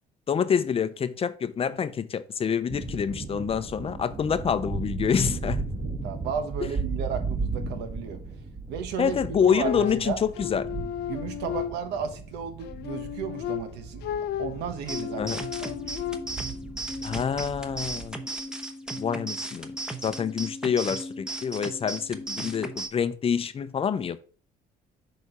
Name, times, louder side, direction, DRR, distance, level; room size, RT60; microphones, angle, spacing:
voice 1, 0.3-5.7 9.0-10.7 15.2-15.4 17.0-18.2 19.0-19.7 20.0-24.2, left 7 dB, 35° left, 0.6 m, -27 dB
sound 1, 2.7-18.1, right 4 dB, 25° right, 1.4 m, -36 dB
voice 2, 5.8-8.2 8.7-10.2 11.1-14.0 14.4-16.0, right 7 dB, 90° right, 1.2 m, -34 dB
sound 2, 9.6-12.2 12.6-16.5, left 10 dB, 75° left, 0.7 m, -34 dB
sound 3, 14.9-22.9, right 2 dB, 5° right, 0.9 m, -36 dB
6.5 x 4.2 x 5.0 m
cardioid pair, 110°, 17 cm